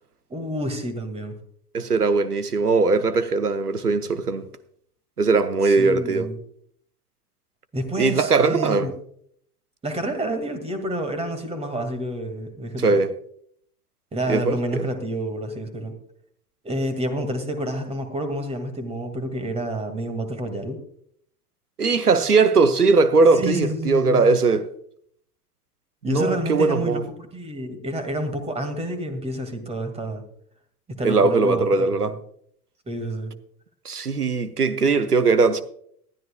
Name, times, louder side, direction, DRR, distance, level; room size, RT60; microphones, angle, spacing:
voice 1, 0.3-1.4 5.6-6.4 7.7-8.9 9.8-13.0 14.1-15.9 16.6-20.8 23.3-24.3 26.0-30.2 30.9-32.2 32.9-33.3, right 1 dB, 15° right, 2.1 m, -29 dB
voice 2, 1.7-4.4 5.2-6.3 8.0-8.9 12.8-13.1 14.3-14.9 21.8-24.7 26.1-27.0 31.0-32.2 33.8-35.6, right 4 dB, 85° right, 0.9 m, -20 dB
19.5 x 12.5 x 2.3 m
figure-of-eight pair, 85°, 45 cm